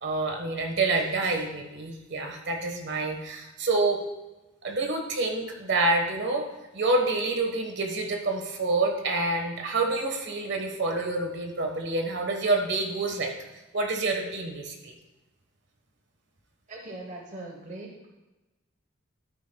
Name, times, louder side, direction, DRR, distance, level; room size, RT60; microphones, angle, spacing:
voice 1, 0.0-4.0 4.6-6.5 6.7-13.3 13.7-14.9, right 2 dB, 60° right, 3 dB, 1.4 m, -27 dB
voice 2, 16.7-18.1, right 2 dB, 35° right, 0 dB, 1.1 m, -40 dB
12.5 x 9.4 x 2.3 m, 1.1 s
head